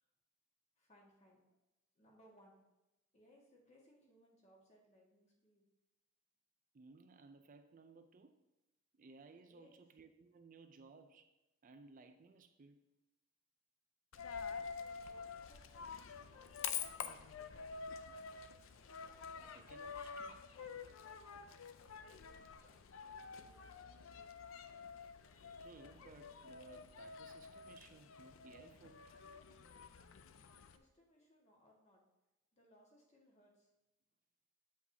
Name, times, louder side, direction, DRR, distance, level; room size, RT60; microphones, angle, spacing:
voice 1, 0.8-1.6 1.9-2.6 3.1-5.6 9.5-9.8 14.3-17.9 21.8-24.5 30.6-32.0 32.5-33.7, equal, 35° left, -2 dB, 1.6 m, -68 dB
voice 2, 6.7-8.4 8.9-11.3 11.6-12.8 19.3-20.4 25.6-29.0, right 3 dB, 40° right, 8 dB, 0.4 m, -60 dB
Coin (dropping), 14.1-30.8, left 6 dB, 90° left, 0.5 m, -48 dB
8.4 x 7.3 x 2.8 m, 0.97 s
head